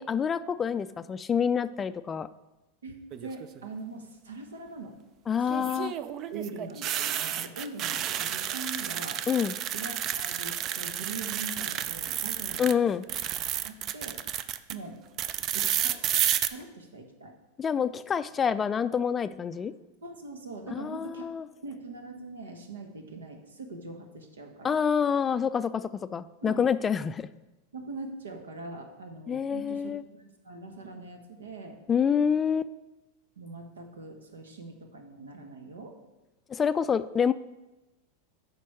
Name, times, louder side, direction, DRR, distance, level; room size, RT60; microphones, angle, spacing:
voice 1, 0.0-2.3 5.3-5.9 9.3-9.5 12.6-13.0 17.6-19.7 20.8-21.4 24.6-27.3 29.3-30.0 31.9-32.7 36.5-37.3, left 7 dB, 25° left, 13 dB, 0.3 m, -27 dB
voice 2, 2.8-5.0 5.4-5.9 6.3-9.2 9.7-12.9 13.6-14.2 14.7-15.0 15.5-16.0 16.4-17.3 20.0-21.3 21.6-24.7 26.4-26.7 27.7-31.8 33.4-36.0, right 3 dB, 85° right, 4 dB, 1.2 m, -42 dB
sound 1, 3.1-3.6 5.5-12.7 13.0-14.7 15.2-16.5, right 10 dB, 40° right, 0.4 m, -31 dB
8.5 x 5.2 x 4.7 m, 1.0 s
hypercardioid pair, 95°, 0 cm